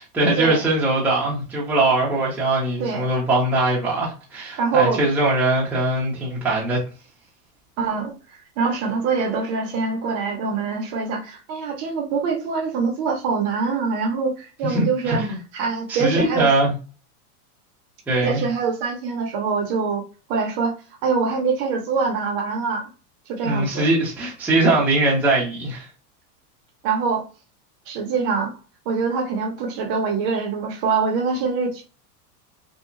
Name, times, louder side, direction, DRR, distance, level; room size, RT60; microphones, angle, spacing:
voice 1, 0.0-6.8 14.6-15.4 15.9-16.7 18.1-18.4 23.4-25.9, right 2 dB, 5° right, 0.7 m, -21 dB
voice 2, 4.6-5.0 7.8-15.2 15.5-16.5 18.2-20.0 20.3-20.7 21.0-22.8 23.3-23.8 26.8-27.2 27.9-28.5 28.9-31.8, right 5 dB, 40° right, 0.7 m, -24 dB
2.8 x 2.2 x 2.5 m
supercardioid pair, 130°, 46 cm